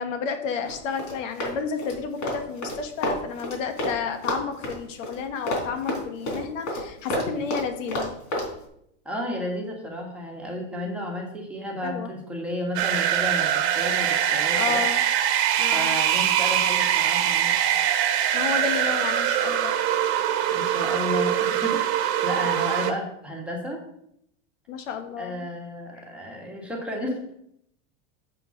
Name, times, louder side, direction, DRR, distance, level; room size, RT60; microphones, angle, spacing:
voice 1, 0.0-8.1 11.8-12.1 14.5-15.0 15.6-15.9 18.3-19.8 24.7-25.5, left 6 dB, 90° left, 7 dB, 1.4 m, -31 dB
Run, 0.6-4.0 4.2-8.5, left 1 dB, 70° left, 3.9 m, -29 dB
voice 2, 9.0-14.9 15.7-17.5 20.5-23.8 25.2-27.3, left 1 dB, 5° right, -2 dB, 1.6 m, -32 dB
sound 1, 12.8-22.9, right 10 dB, 60° right, 1.2 m, -23 dB
7.2 x 5.8 x 5.7 m, 0.74 s
supercardioid pair, 155°, 37 cm